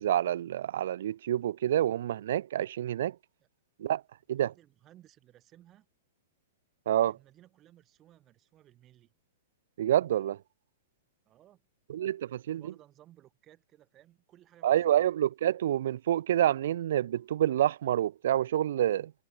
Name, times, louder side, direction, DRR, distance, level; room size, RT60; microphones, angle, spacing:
voice 1, 0.0-3.2 3.8-4.0 4.3-4.5 6.9-7.2 9.8-10.4 11.9-12.6 14.6-19.1, right 11 dB, 70° right, 0.4 m, -27 dB
voice 2, 4.4-5.9 7.0-9.1 11.3-11.6 12.6-15.0, right 13 dB, 30° right, 5.9 m, -59 dB
hypercardioid pair, 125°, 0 cm